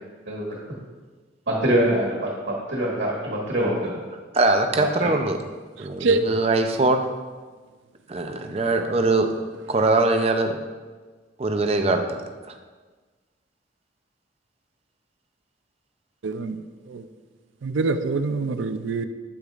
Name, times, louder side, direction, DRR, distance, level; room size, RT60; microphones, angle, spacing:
voice 1, 0.3-0.6 1.5-3.9 5.0-5.1, right 1 dB, 70° right, -4 dB, 1.5 m, -24 dB
voice 2, 4.3-5.4 5.8-7.0 8.1-9.3 9.7-10.6 11.4-12.2, right 2 dB, 35° right, 6 dB, 0.5 m, -22 dB
voice 3, 16.2-16.6 16.9-17.0 17.6-19.1, right 3 dB, 85° right, 9 dB, 0.4 m, -24 dB
8.6 x 8.0 x 2.5 m, 1.4 s
head